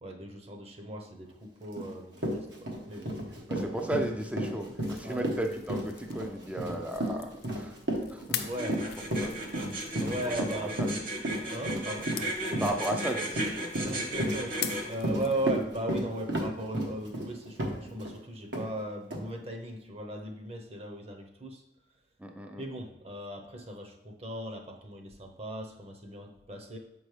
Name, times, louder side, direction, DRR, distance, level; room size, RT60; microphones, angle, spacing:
voice 1, 0.0-3.1 5.0-5.3 8.4-8.8 10.0-10.8 11.5-12.2 13.8-14.6 14.9-21.6 22.6-26.8, right 1 dB, 35° right, 3 dB, 0.8 m, -37 dB
Run, 1.8-1.9 2.2-18.2 18.5-18.7 19.1-19.2, equal, 80° right, 1.2 m, -33 dB
voice 2, 3.5-7.8 8.1-8.5 9.2-9.5 10.2-10.9 12.5-14.0 22.2-22.6, right 1 dB, 5° right, 4 dB, 0.4 m, -35 dB
sound 1, 4.6-15.8, left 10 dB, 60° left, 0.5 m, -44 dB
sound 2, 8.6-14.8, right 1 dB, 50° right, 1.2 m, -35 dB
7.1 x 5.3 x 3.3 m, 0.93 s
head